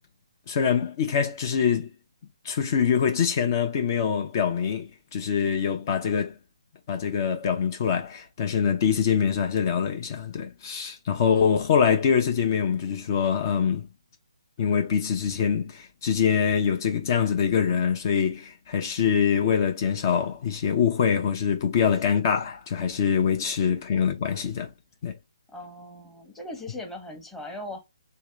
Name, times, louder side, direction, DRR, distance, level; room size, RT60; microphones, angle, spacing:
voice 1, 0.5-1.9 2.4-6.4 6.9-13.9 14.6-24.7 25.0-25.1, left 7 dB, 35° left, 0.6 m, -24 dB
voice 2, 25.5-27.8, left 1 dB, 5° left, 0.9 m, -39 dB
3.0 x 2.7 x 3.3 m
figure-of-eight pair, 145°, 3 cm